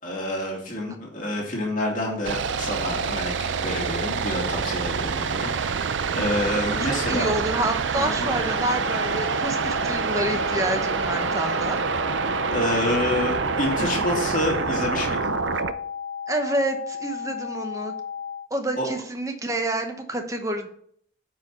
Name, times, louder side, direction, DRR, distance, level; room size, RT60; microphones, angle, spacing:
voice 1, 0.0-5.8 6.1-7.3 7.9-8.4 12.5-15.3 18.8-18.9, left 1 dB, 45° left, -2 dB, 2.3 m, -28 dB
sound 1, 2.2-15.7, right 5 dB, 85° right, 0.5 m, -26 dB
voice 2, 6.8-11.8 16.3-17.9 18.5-20.7, right 1 dB, 15° right, 5 dB, 0.9 m, -28 dB
sound 2, 8.5-18.5, left 7 dB, 75° left, 0.5 m, -34 dB
9.2 x 4.8 x 4.3 m, 0.64 s
head